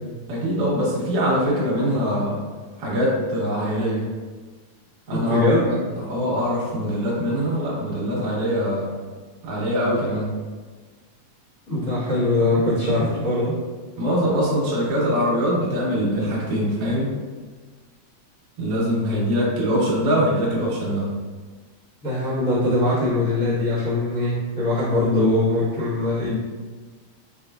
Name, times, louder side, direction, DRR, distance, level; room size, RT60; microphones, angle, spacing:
voice 1, 0.3-2.4 2.8-4.1 5.1-8.9 9.4-10.3 14.0-17.1 18.6-21.1, equal, 55° right, -7 dB, 0.9 m, -23 dB
voice 2, 5.1-5.6 11.7-13.6 22.0-26.3, left 2 dB, 40° left, -14 dB, 1.2 m, -22 dB
5.2 x 3.2 x 2.4 m, 1.4 s
omnidirectional pair, 3.4 m